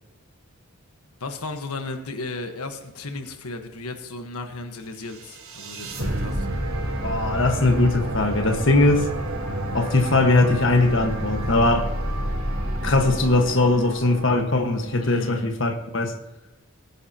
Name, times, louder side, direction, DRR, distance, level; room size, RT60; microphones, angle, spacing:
voice 1, 1.2-6.7 15.0-15.6, left 3 dB, 90° left, 1.3 m, -35 dB
sound 1, 5.0-15.2, right 1 dB, 75° right, 3.3 m, -29 dB
voice 2, 7.0-9.1 9.7-11.9 12.8-16.1, left 2 dB, 55° left, 1.5 m, -20 dB
18.5 x 10.0 x 2.9 m
head